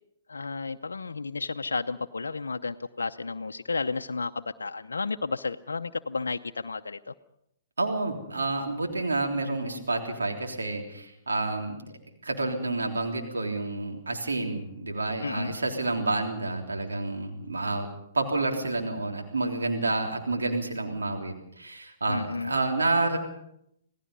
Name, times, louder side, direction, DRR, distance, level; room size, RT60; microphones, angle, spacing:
voice 1, 0.3-7.1 15.2-15.5 22.1-22.5, left 4 dB, 75° left, 6 dB, 0.7 m, -32 dB
voice 2, 7.8-11.8 12.2-23.2, right 2 dB, 75° right, 2 dB, 3.4 m, -29 dB
27.5 x 18.0 x 5.4 m, 0.75 s
figure-of-eight pair, 120°, 0 cm